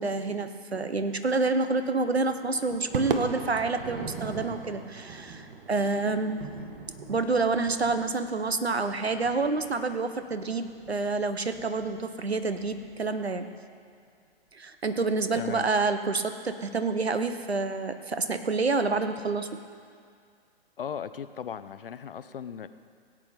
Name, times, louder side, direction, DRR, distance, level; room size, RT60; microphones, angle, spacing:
voice 1, 0.0-6.5 7.1-13.5 14.5-19.6, right 3 dB, 85° right, 9 dB, 1.0 m, -28 dB
Thunder, 1.7-13.4, right 4 dB, 30° right, 1.7 m, -46 dB
Crowd / Fireworks, 2.9-7.4, right 5 dB, 60° right, 1.1 m, -36 dB
voice 2, 15.3-15.7 20.8-22.7, left 8 dB, 60° left, 13 dB, 0.7 m, -37 dB
17.5 x 8.5 x 5.2 m, 2.2 s
figure-of-eight pair, 120°, 31 cm